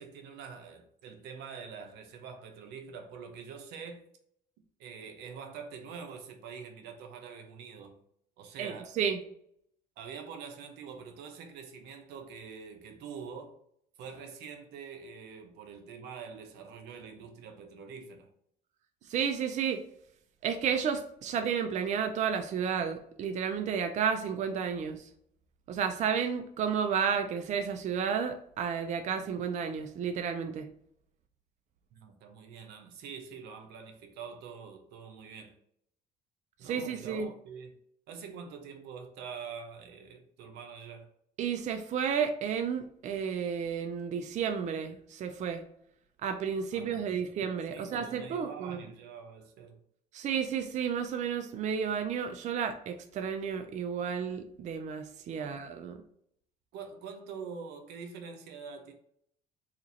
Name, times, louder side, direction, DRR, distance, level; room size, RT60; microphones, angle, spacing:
voice 1, 0.0-4.0 4.8-8.0 8.4-8.9 10.0-13.6 14.0-18.3 31.9-35.6 36.6-37.8 38.1-41.1 46.7-47.4 47.7-49.8 55.4-55.6 56.7-58.9, right 6 dB, 85° right, 0.6 m, -45 dB
voice 2, 8.6-9.2 19.1-19.8 20.4-25.0 25.7-30.7 36.6-37.3 41.4-45.6 46.2-48.8 50.1-56.0, right 7 dB, 45° right, 0.4 m, -32 dB
2.9 x 2.4 x 3.8 m
cardioid pair, 110°, 17 cm